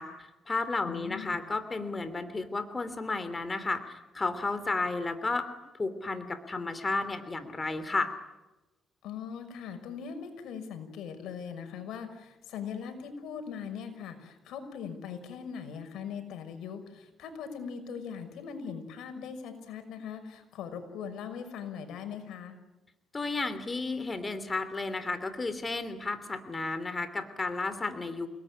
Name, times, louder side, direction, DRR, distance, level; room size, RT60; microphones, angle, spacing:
voice 1, 0.0-5.5 5.7-8.1 23.1-28.3, left 3 dB, 25° left, 11 dB, 3.0 m, -33 dB
voice 2, 0.8-1.4 9.0-22.5, left 7 dB, 85° left, 8 dB, 6.0 m, -40 dB
29.5 x 19.5 x 10.0 m, 1.0 s
cardioid pair, 90°, 0 cm